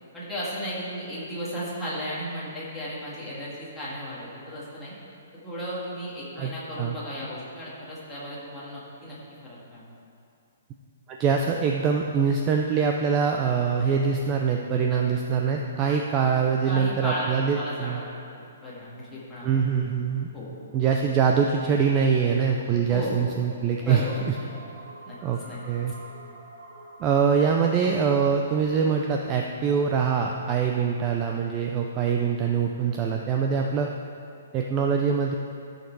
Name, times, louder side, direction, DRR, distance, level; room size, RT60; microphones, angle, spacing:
voice 1, 0.1-4.9 5.4-9.2 9.4-9.9 16.6-18.0 18.6-19.5 20.3-20.5 22.9-23.3 23.8-24.5 25.0-25.2 25.5-25.6, equal, 5° left, -10 dB, 2.0 m, -34 dB
voice 2, 11.1-18.0 19.4-20.3 20.7-24.3 25.2-25.4 25.7-25.9 27.0-33.9 34.5-35.3, right 6 dB, 20° right, 1 dB, 0.4 m, -24 dB
sound 1, 23.8-29.7, right 2 dB, 35° right, 2.2 m, -48 dB
13.0 x 6.6 x 4.7 m, 2.5 s
hypercardioid pair, 170°, 0 cm